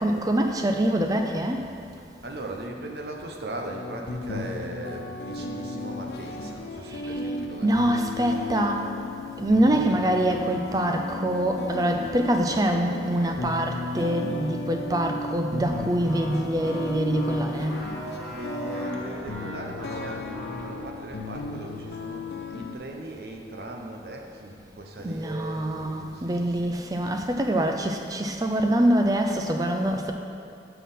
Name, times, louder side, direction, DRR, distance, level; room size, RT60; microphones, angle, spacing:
voice 1, 0.0-1.7 6.9-7.2 7.6-8.9 9.4-17.8 25.0-30.1, right 1 dB, 20° right, 4 dB, 0.4 m, -25 dB
voice 2, 2.2-7.7 18.0-26.8, right 1 dB, 60° right, 1 dB, 0.8 m, -39 dB
sound 1, 3.7-22.7, left 2 dB, 60° left, 0.5 m, -35 dB
sound 2, 15.7-20.8, equal, ahead, 2.0 m, -38 dB
6.2 x 5.8 x 5.4 m, 2.5 s
head